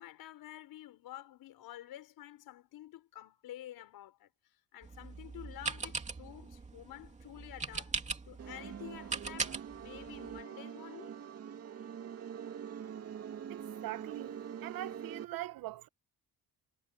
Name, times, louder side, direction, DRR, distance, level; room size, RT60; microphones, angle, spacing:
voice 1, 0.0-4.3 4.7-8.0 8.2-11.1, left 13 dB, 70° left, 5.5 m, -50 dB
sound 1, 4.8-10.4, right 4 dB, 20° right, 2.8 m, -41 dB
sound 2, 8.4-15.3, right 8 dB, 40° right, 2.4 m, -44 dB
voice 2, 13.5-15.9, right 15 dB, 65° right, 1.0 m, -42 dB
cardioid pair, 180°, 37 cm